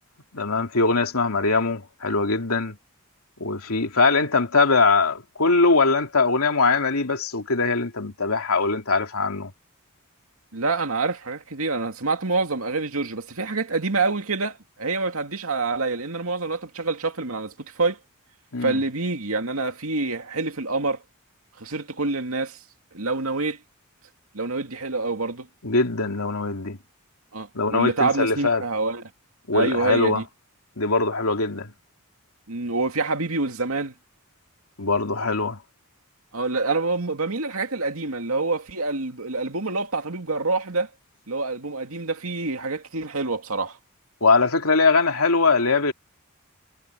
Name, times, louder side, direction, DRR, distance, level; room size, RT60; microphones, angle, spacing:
voice 1, 0.3-2.8 3.4-9.5 18.5-18.8 25.6-26.8 27.5-28.6 29.5-30.2 30.8-31.7 34.8-35.6 44.2-45.9, left 3 dB, 80° left, 2.8 m, -21 dB
voice 2, 10.5-18.0 18.6-21.0 21.6-22.6 22.9-23.6 24.3-25.5 27.3-29.0 29.5-30.2 32.5-33.9 36.3-40.9 41.3-43.8, right 3 dB, 75° right, 2.4 m, -26 dB
head